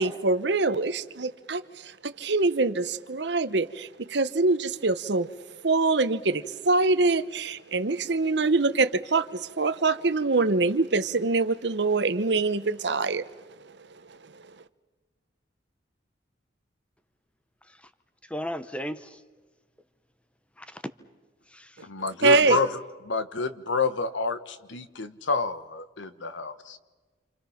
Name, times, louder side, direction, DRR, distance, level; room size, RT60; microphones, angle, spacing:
voice 1, 0.0-5.3 5.6-13.2 14.3-14.4 22.2-22.6, right 3 dB, 65° right, 13 dB, 0.9 m, -24 dB
voice 2, 18.2-19.2 20.6-20.8 21.5-21.9, equal, 5° left, 11 dB, 0.8 m, -36 dB
voice 3, 21.8-22.7 23.0-26.8, left 4 dB, 90° left, 12 dB, 1.2 m, -28 dB
29.0 x 27.0 x 5.8 m, 1.3 s
head